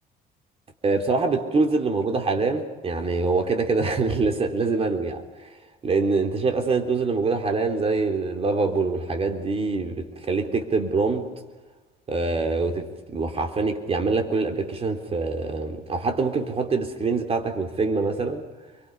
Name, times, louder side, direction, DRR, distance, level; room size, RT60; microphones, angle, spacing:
voice 1, 0.8-5.5 5.8-11.3 12.1-18.4, right 3 dB, 35° right, 4 dB, 3.8 m, -24 dB
28.5 x 24.5 x 5.6 m, 1.2 s
cardioid pair, 110°, 17 cm